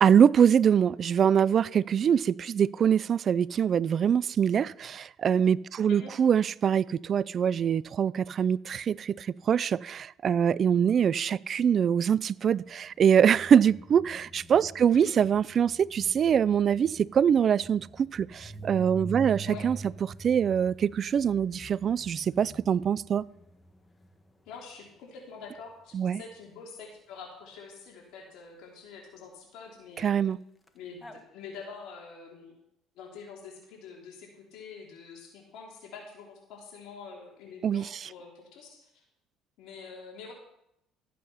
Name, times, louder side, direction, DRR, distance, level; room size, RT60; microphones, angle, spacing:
voice 1, 0.0-19.8 20.2-23.2 25.9-26.2 30.0-30.4 37.6-37.9, right 8 dB, 45° right, 0.4 m, -24 dB
sound 1, 12.9-24.5 30.7-30.8 31.0-31.2, right 3 dB, 15° left, 1.5 m, -45 dB
voice 2, 24.5-30.2 30.7-32.6 33.0-39.0 39.6-40.3, left 5 dB, 75° left, 3.5 m, -46 dB
14.0 x 8.5 x 5.7 m
supercardioid pair, 95°, 0 cm